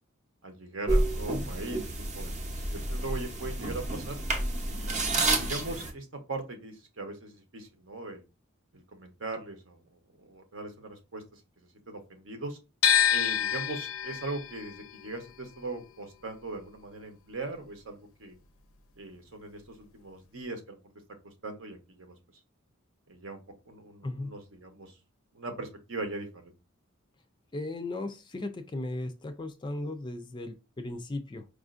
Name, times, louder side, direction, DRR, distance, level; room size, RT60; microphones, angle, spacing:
voice 1, 0.4-2.3 2.7-4.2 4.7-8.2 8.7-9.8 10.2-12.6 13.1-18.4 19.0-20.9 21.2-22.1 23.1-24.9 25.3-26.5, right 2 dB, 70° right, 0.9 m, -40 dB
sound 1, 0.9-5.9, right 2 dB, 35° right, 0.7 m, -30 dB
sound 2, 12.8-18.9 19.1-20.4, left 9 dB, 85° left, 0.5 m, -30 dB
voice 2, 27.5-31.5, left 2 dB, 20° left, 0.3 m, -36 dB
4.9 x 2.5 x 2.4 m
head